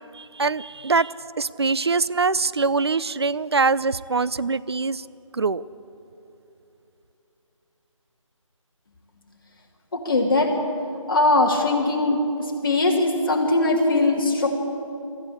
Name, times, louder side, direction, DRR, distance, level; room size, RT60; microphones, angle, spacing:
voice 1, 0.0-5.0 5.3-5.6, right 4 dB, 50° right, 17 dB, 0.5 m, -23 dB
voice 2, 9.9-10.6 11.1-14.5, left 2 dB, 40° left, 0 dB, 2.7 m, -21 dB
23.0 x 14.5 x 8.6 m, 2.9 s
figure-of-eight pair, 170°, 17 cm